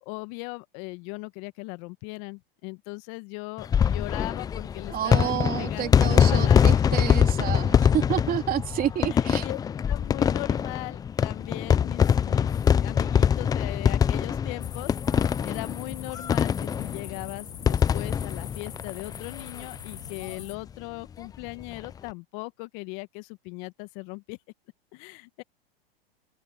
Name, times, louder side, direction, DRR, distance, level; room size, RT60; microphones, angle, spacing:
voice 1, 0.0-6.8 9.1-9.6 9.9-12.5 12.8-24.4 24.9-25.4, left 26 dB, 45° left, 1.6 m, -39 dB
sound 1, 3.6-19.6 19.9-20.0 20.2-20.3 21.6-21.9, left 8 dB, 15° left, 0.4 m, -23 dB
voice 2, 4.9-9.5, right 11 dB, 30° right, 3.3 m, -29 dB
sound 2, 14.6-20.6, left 8 dB, 90° left, 7.7 m, -44 dB
open air
hypercardioid pair, 115°, 30 cm